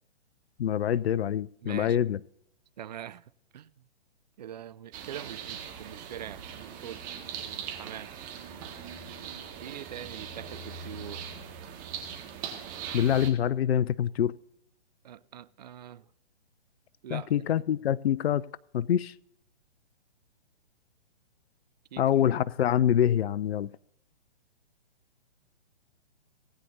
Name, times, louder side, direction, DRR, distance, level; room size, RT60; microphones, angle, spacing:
voice 1, 0.6-2.2 12.9-14.3 17.1-18.4 18.7-19.1 22.0-23.7, left 10 dB, 70° left, 0.5 m, -25 dB
voice 2, 1.6-2.0 2.8-3.2 3.5-3.7 4.4-7.0 7.4-8.1 9.6-11.3 15.0-16.1 17.0-17.5 21.9-22.3, right 10 dB, 40° right, 0.4 m, -43 dB
sound 1, 4.9-13.3, right 7 dB, 25° right, 1.8 m, -40 dB
18.5 x 9.0 x 2.7 m
figure-of-eight pair, 130°, 33 cm